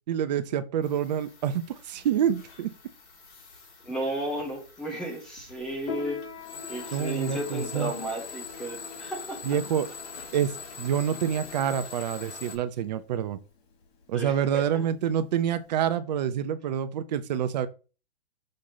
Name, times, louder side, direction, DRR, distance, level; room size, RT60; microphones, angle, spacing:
voice 1, 0.1-2.7 6.9-7.9 9.4-9.9 10.3-13.4 14.1-17.7, right 9 dB, 40° right, 0.7 m, -27 dB
sound 1, 0.8-12.6, left 5 dB, 80° left, 2.8 m, -43 dB
voice 2, 3.8-6.2 6.7-9.6 14.1-14.6, right 1 dB, ahead, 0.3 m, -34 dB
Piano, 5.8-15.8, left 5 dB, 65° left, 2.2 m, -44 dB
6.5 x 2.9 x 5.4 m
hypercardioid pair, 150°, 33 cm